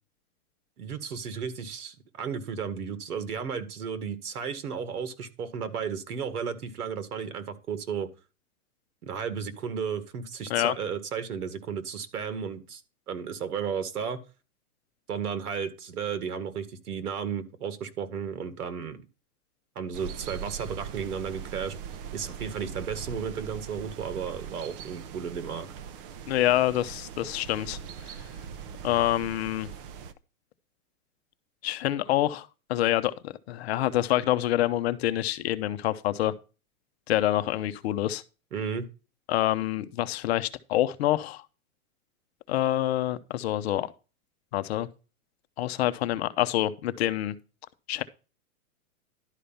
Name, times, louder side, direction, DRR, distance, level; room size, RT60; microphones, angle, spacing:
voice 1, 0.8-8.1 9.0-12.8 13.1-14.2 15.1-19.0 19.8-21.7 22.1-25.7 38.5-38.9, right 6 dB, 85° right, 2.0 m, -34 dB
sound 1, 19.9-30.1, right 7 dB, 35° right, 0.9 m, -41 dB
voice 2, 26.3-27.8 28.1-28.2 28.8-29.7 31.6-36.3 37.1-38.2 39.3-41.4 42.5-43.9 44.5-44.9 45.6-47.4 47.9-48.0, left 14 dB, 45° left, 0.9 m, -26 dB
11.5 x 5.0 x 5.7 m
hypercardioid pair, 155°, 44 cm